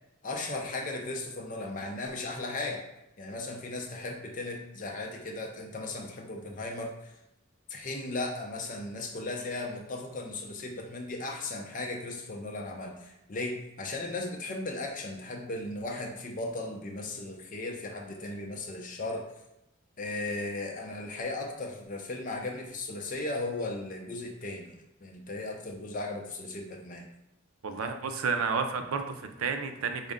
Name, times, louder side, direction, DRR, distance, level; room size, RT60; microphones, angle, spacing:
voice 1, 0.2-2.8 3.2-7.1 7.7-19.3 20.0-24.7 25.0-27.1, left 2 dB, 40° left, 2 dB, 0.5 m, -36 dB
voice 2, 27.6-30.1, right 5 dB, 85° right, 6 dB, 0.5 m, -31 dB
5.1 x 2.1 x 3.6 m, 0.88 s
head